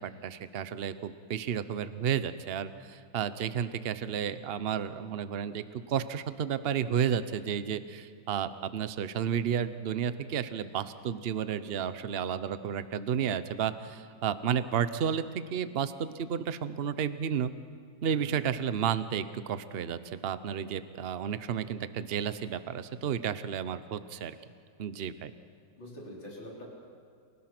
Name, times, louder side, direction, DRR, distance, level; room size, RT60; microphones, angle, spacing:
voice 1, 0.0-17.5 18.0-24.4 24.8-25.3, right 8 dB, 60° right, 12 dB, 0.6 m, -32 dB
voice 2, 25.8-26.6, left 1 dB, 80° left, -3 dB, 5.5 m, -45 dB
29.5 x 17.5 x 6.0 m, 2.3 s
omnidirectional pair, 2.1 m